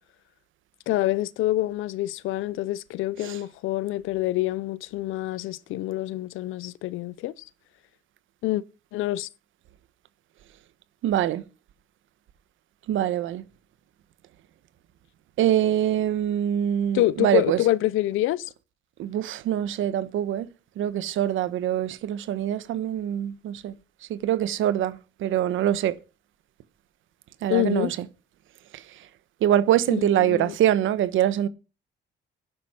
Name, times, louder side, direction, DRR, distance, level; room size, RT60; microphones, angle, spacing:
voice 1, 0.9-7.3 8.4-8.6 8.9-9.3 16.9-18.5 27.5-27.9 29.9-30.6, left 15 dB, 90° left, 0.6 m, -26 dB
voice 2, 11.0-11.4 12.9-13.4 15.4-17.6 19.0-20.5 20.8-23.7 24.1-25.0 25.2-25.9 27.4-27.9 29.4-31.5, right 11 dB, 80° right, 1.2 m, -24 dB
11.5 x 10.5 x 6.1 m
cardioid pair, 90°, 20 cm